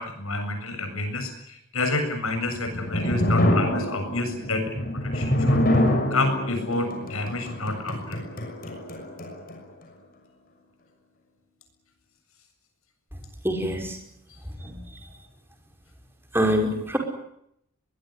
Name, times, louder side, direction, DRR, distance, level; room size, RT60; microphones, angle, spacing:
voice 1, 0.0-4.8 5.1-5.6 6.1-8.2, left 2 dB, 75° left, 7 dB, 7.6 m, -29 dB
sound 1, 2.5-9.6, left 1 dB, 40° left, 6.4 m, -26 dB
voice 2, 13.4-14.0 14.6-14.8 16.3-17.0, equal, 10° right, 3 dB, 5.4 m, -24 dB
23.0 x 21.5 x 10.0 m, 0.74 s
head